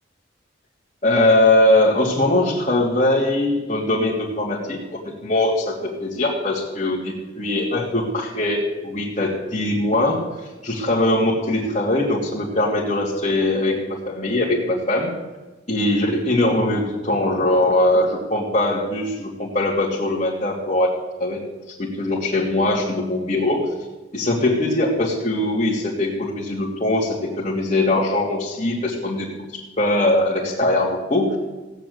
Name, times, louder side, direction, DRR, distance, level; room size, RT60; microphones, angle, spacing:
voice 1, 1.0-10.2 10.6-15.1 15.7-20.9 21.2-23.7 24.1-31.4, left 1 dB, 35° left, -6 dB, 2.6 m, -21 dB
16.5 x 9.0 x 8.1 m, 1.1 s
head